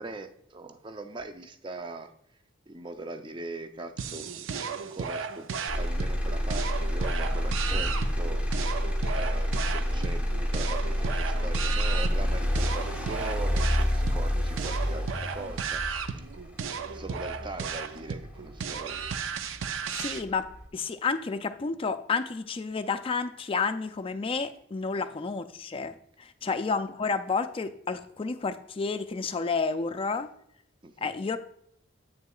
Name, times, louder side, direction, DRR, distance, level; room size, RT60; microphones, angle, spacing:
voice 1, 0.0-2.1 2.7-16.2 16.5-19.1 25.0-25.1 26.4-26.5 30.8-31.1, right 2 dB, 25° right, 8 dB, 0.5 m, -41 dB
sound 1, 4.0-20.2, right 6 dB, 80° right, 0.5 m, -35 dB
Motor vehicle (road), 5.7-19.7 20.2-20.7, equal, 5° right, 0.9 m, -29 dB
voice 2, 19.9-30.3 31.0-31.4, left 4 dB, 30° left, 10 dB, 0.4 m, -31 dB
8.4 x 6.6 x 2.3 m, 0.70 s
head